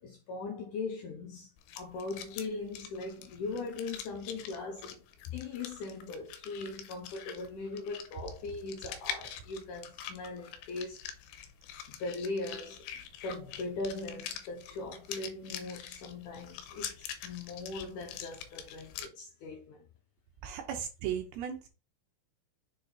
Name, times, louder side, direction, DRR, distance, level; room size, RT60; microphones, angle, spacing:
voice 1, 0.0-11.0 11.9-19.9, left 3 dB, 70° left, 2.0 m, -40 dB
sound 1, 1.6-19.1, left 9 dB, 90° left, 2.7 m, -45 dB
voice 2, 20.4-21.7, right 9 dB, 75° right, 2.8 m, -36 dB
6.9 x 3.6 x 4.0 m
omnidirectional pair, 4.7 m